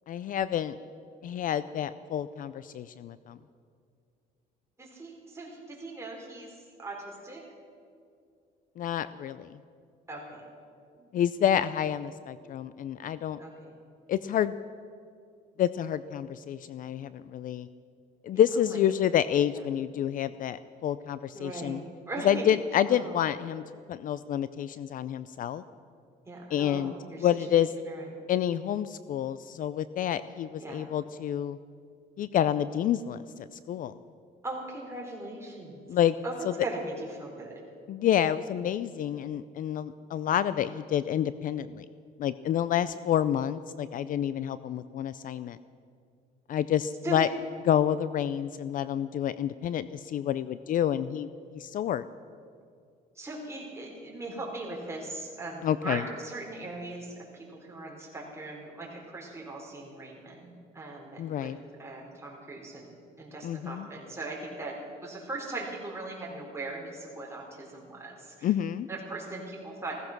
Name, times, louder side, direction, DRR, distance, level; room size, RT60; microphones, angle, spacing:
voice 1, 0.1-0.8 1.2-3.4 8.8-9.6 11.1-13.4 14.1-14.5 15.6-17.7 18.2-21.8 22.2-23.6 23.9-25.6 26.5-26.9 27.2-27.7 28.3-31.6 32.2-33.9 35.9-36.2 36.4-36.5 37.9-41.9 42.2-45.6 46.5-47.3 47.7-52.1 55.6-56.0 61.2-61.6 63.4-63.9 68.4-68.9, left 10 dB, 55° left, 15 dB, 0.5 m, -28 dB
voice 2, 4.8-7.4 10.1-10.4 11.0-11.1 13.4-13.7 18.3-18.4 18.7-18.8 19.5-19.6 21.3-22.6 22.9-23.2 26.3-27.5 27.9-28.1 30.6-30.9 34.4-35.8 36.2-37.6 47.0-47.3 53.2-61.5 61.8-68.5 68.9-70.0, right 2 dB, 15° right, -2 dB, 4.4 m, -39 dB
16.0 x 15.0 x 6.1 m, 2.3 s
cardioid pair, 110°, 17 cm